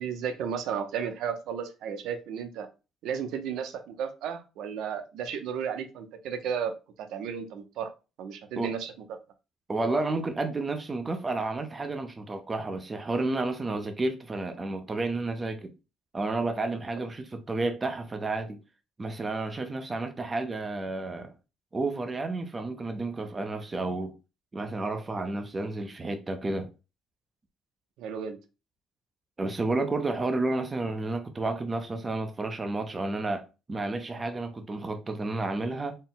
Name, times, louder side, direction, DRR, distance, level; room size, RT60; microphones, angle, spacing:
voice 1, 0.0-2.7 3.0-6.7 7.0-7.9 8.2-9.2 17.0-17.1 28.0-28.4, right 7 dB, 75° right, 0.6 m, -34 dB
voice 2, 9.7-15.7 16.1-18.6 19.0-21.3 21.7-24.1 24.5-26.7 29.4-36.0, right 2 dB, 20° right, 0.5 m, -31 dB
4.1 x 2.0 x 3.8 m
cardioid pair, 155°, 0 cm